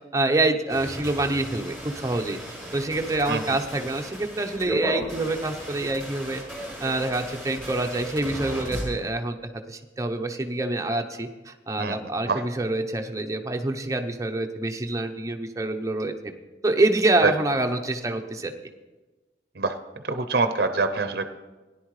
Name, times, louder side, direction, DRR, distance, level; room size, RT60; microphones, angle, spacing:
voice 1, 0.1-2.4 2.7-6.4 6.8-9.4 9.7-16.3 16.6-18.5, right 2 dB, 20° right, 5 dB, 0.7 m, -26 dB
sound 1, 0.7-8.8, equal, ahead, 4.1 m, -36 dB
voice 2, 20.0-21.3, right 3 dB, 60° right, 8 dB, 0.7 m, -24 dB
17.0 x 10.5 x 3.2 m, 1.2 s
head